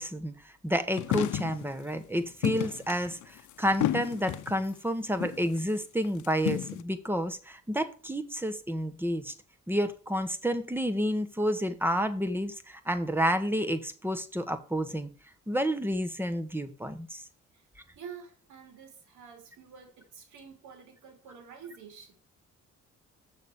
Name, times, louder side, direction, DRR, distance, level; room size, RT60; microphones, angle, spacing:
voice 1, 0.0-9.3 9.7-15.1 15.5-17.2, equal, 5° right, 1.2 m, -30 dB
sound 1, 1.0-1.7 2.4-4.6 5.2-5.5 6.0-6.8, left 13 dB, 85° left, 0.7 m, -31 dB
voice 2, 18.0-22.1, right 7 dB, 90° right, 2.8 m, -48 dB
7.1 x 6.6 x 4.8 m
cardioid pair, 95°, 29 cm